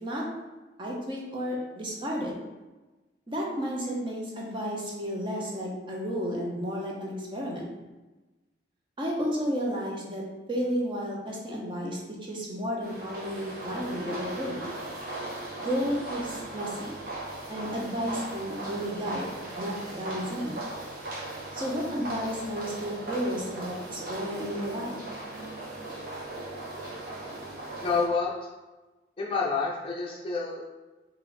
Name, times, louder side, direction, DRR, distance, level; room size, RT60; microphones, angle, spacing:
voice 1, 0.8-2.3 3.3-7.7 9.0-10.2 10.5-14.6 15.6-16.9 17.5-19.3 19.6-20.6 21.5-25.0, equal, 25° right, -2 dB, 0.8 m, -32 dB
sound 1, 12.8-28.1, right 2 dB, 50° right, 1.0 m, -38 dB
voice 2, 27.8-28.3 29.2-30.6, left 4 dB, 30° left, -2 dB, 0.5 m, -28 dB
4.4 x 2.6 x 3.2 m, 1.1 s
head